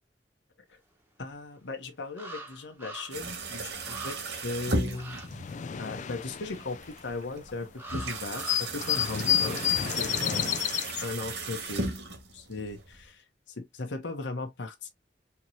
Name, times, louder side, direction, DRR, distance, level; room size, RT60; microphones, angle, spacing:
voice 1, 1.2-5.2 5.8-10.6 11.0-11.9 12.3-14.9, left 3 dB, 85° left, 0.9 m, -38 dB
sound 1, 1.3-1.4 2.2-3.3 3.6-3.7 3.9-4.5 4.9-5.3 7.8-9.8 10.1-10.3, right 2 dB, 10° right, 1.1 m, -44 dB
sound 2, 3.1-13.1, right 2 dB, 75° right, 1.6 m, -36 dB
sound 3, 4.7-4.8 5.0-7.5 7.9-8.0 8.2-11.0, left 10 dB, 45° left, 0.4 m, -30 dB
4.6 x 2.8 x 2.7 m
head